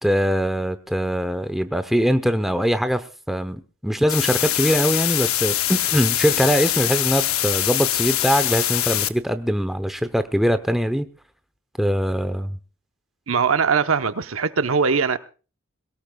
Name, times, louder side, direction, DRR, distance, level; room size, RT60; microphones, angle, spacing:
voice 1, 0.0-11.1 11.8-12.6, equal, ahead, 0.7 m, -22 dB
sound 1, 4.1-9.1, left 13 dB, 85° left, 0.8 m, -23 dB
voice 2, 13.3-15.2, right 5 dB, 80° right, 0.9 m, -21 dB
22.0 x 17.5 x 2.3 m
head